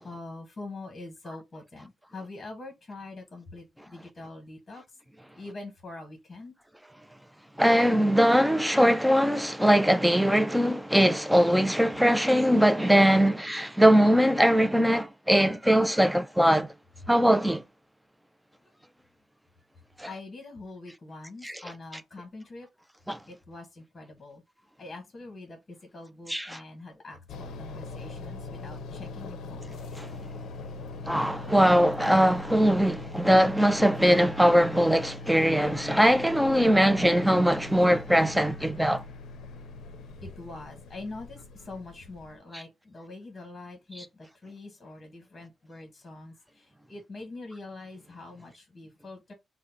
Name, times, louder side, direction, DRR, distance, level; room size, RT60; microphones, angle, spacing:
voice 1, 0.0-4.8 5.4-6.5 17.0-17.1 18.6-18.7 20.1-22.7 23.3-24.4 24.8-29.8 40.2-49.3, left 2 dB, 25° left, 1.1 m, -44 dB
voice 2, 7.6-16.7 17.1-17.6 20.0-20.1 21.4-21.6 23.1-23.2 26.3-26.6 30.0-30.1 31.1-39.0 42.5-42.6 44.0-44.1, equal, 5° right, 0.3 m, -21 dB
sound 1, 27.3-42.4, left 3 dB, 85° left, 0.5 m, -41 dB
3.7 x 2.0 x 4.3 m
wide cardioid pair, 155°, 0 cm